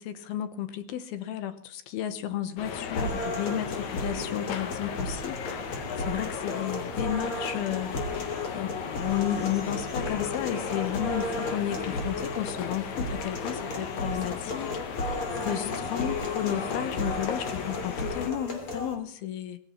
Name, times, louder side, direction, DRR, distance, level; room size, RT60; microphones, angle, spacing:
voice 1, 0.0-8.1 8.5-19.6, left 11 dB, 75° left, 2.8 m, -33 dB
sound 1, 2.6-18.3, left 6 dB, 60° left, 2.3 m, -36 dB
sound 2, 2.9-18.9, left 2 dB, 35° left, 3.5 m, -34 dB
20.0 x 16.0 x 4.3 m
omnidirectional pair, 4.6 m